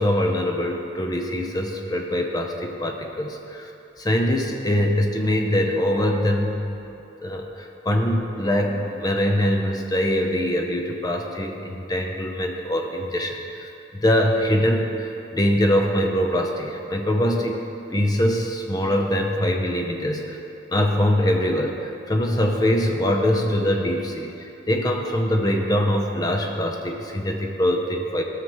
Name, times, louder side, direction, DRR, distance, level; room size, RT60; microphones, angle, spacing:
voice 1, 0.0-3.7 4.0-6.6 7.2-17.6 17.9-20.4 20.7-28.2, left 1 dB, 20° left, 2 dB, 0.6 m, -23 dB
13.0 x 6.5 x 3.1 m, 2.9 s
head